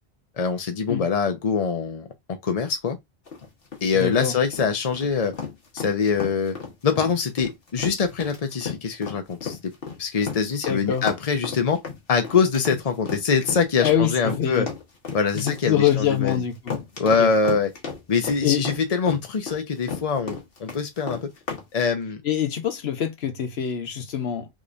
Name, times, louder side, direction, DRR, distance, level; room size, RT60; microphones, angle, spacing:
voice 1, 0.4-3.0 3.8-5.3 5.7-6.6 6.8-9.7 10.0-11.8 12.1-14.7 15.1-16.4 17.0-17.7 18.1-21.3 21.7-22.2, left 5 dB, 40° left, 0.8 m, -24 dB
sound 1, 3.3-21.7, left 5 dB, 65° left, 1.4 m, -34 dB
voice 2, 3.9-4.3 10.7-11.1 13.8-14.7 15.4-16.8 17.2-17.3 18.4-18.6 22.2-24.5, left 9 dB, 85° left, 1.0 m, -24 dB
3.7 x 3.1 x 2.5 m
omnidirectional pair, 1.0 m